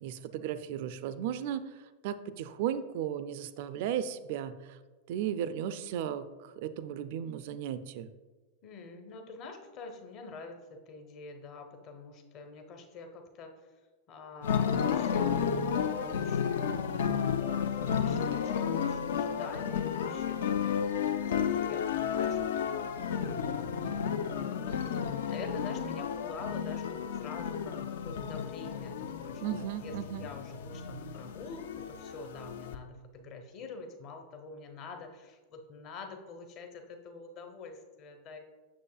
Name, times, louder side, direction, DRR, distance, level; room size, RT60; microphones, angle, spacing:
voice 1, 0.0-1.7 2.0-4.8 5.1-8.1 29.4-30.3, right 10 dB, 50° right, 13 dB, 0.3 m, -35 dB
voice 2, 8.6-13.7 14.1-17.0 17.4-38.4, left 4 dB, 35° left, 5 dB, 0.8 m, -46 dB
sound 1, 14.4-32.8, left 7 dB, 60° left, 0.4 m, -32 dB
7.4 x 6.4 x 2.3 m, 1.3 s
figure-of-eight pair, 90°, 0 cm